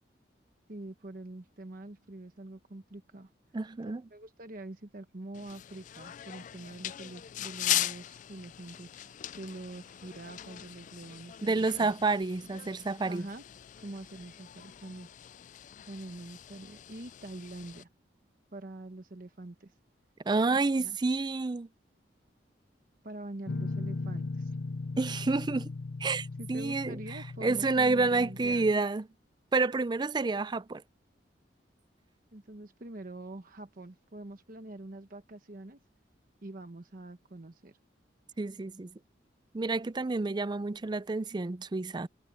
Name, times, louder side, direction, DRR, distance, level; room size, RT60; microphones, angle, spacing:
voice 1, 0.7-3.3 3.8-11.9 13.0-13.4 13.8-15.1 15.8-17.9 18.5-19.7 20.8-21.0 23.0-24.6 26.4-28.7 32.3-35.8 36.4-37.8, right 2 dB, 50° right, 1.1 m, -45 dB
voice 2, 3.5-4.0 11.4-13.2 20.3-21.7 25.0-25.7 26.0-29.1 29.5-30.8 38.4-38.9 39.5-42.1, right 3 dB, 25° right, 0.4 m, -29 dB
sound 1, 5.3-17.8, left 13 dB, 45° left, 0.3 m, -39 dB
Guitar, 23.5-28.7, left 3 dB, 70° left, 0.7 m, -38 dB
head